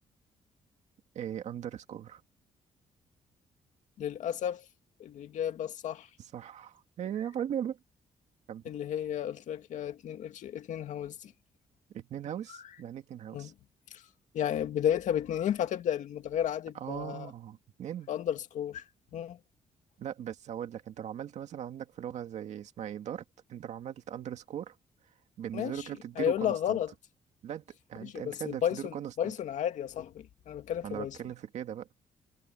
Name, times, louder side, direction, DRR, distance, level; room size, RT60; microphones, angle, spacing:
voice 1, 1.1-2.2 6.2-7.8 8.5-8.6 11.9-13.5 16.7-18.1 20.0-23.2 23.5-24.8 25.4-26.8 27.4-27.6 27.9-29.3 30.8-31.9, right 10 dB, 65° right, 2.0 m, -39 dB
voice 2, 4.0-4.7 5.0-6.1 8.7-11.3 13.3-13.5 14.3-17.3 18.1-18.8 19.1-19.4 25.5-25.8 26.2-26.9 28.0-31.2, left 10 dB, 70° left, 2.1 m, -33 dB
cardioid pair, 170°, 13 cm